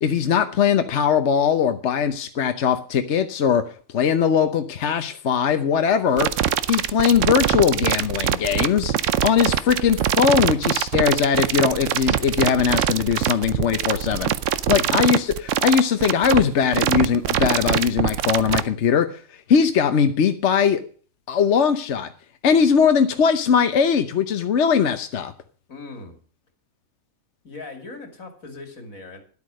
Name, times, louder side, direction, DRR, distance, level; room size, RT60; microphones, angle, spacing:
voice 1, 0.0-3.6 3.9-6.3 6.7-8.9 9.2-14.3 14.7-20.8 21.3-22.1 22.4-25.3, left 7 dB, 60° left, 9 dB, 1.1 m, -20 dB
sound 1, 6.2-18.6, right 10 dB, 70° right, 1.0 m, -22 dB
voice 2, 14.6-15.0 25.7-26.2 27.4-29.2, left 2 dB, 80° left, 6 dB, 3.0 m, -39 dB
11.5 x 8.5 x 6.3 m, 0.42 s
omnidirectional pair, 1.4 m